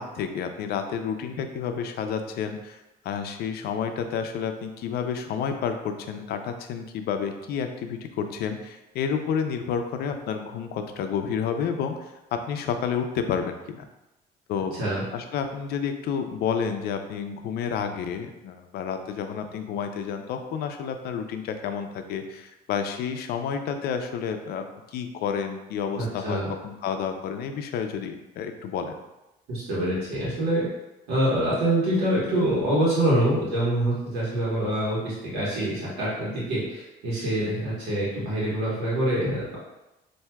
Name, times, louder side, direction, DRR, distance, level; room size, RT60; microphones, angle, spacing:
voice 1, 0.0-13.8 14.5-14.8 15.1-29.0, left 7 dB, 70° left, 6 dB, 0.5 m, -30 dB
voice 2, 14.7-15.0 26.0-26.5 29.5-30.6 31.1-39.6, right 1 dB, 90° right, -7 dB, 1.3 m, -25 dB
5.7 x 2.6 x 2.2 m, 0.98 s
cardioid pair, 110°, 17 cm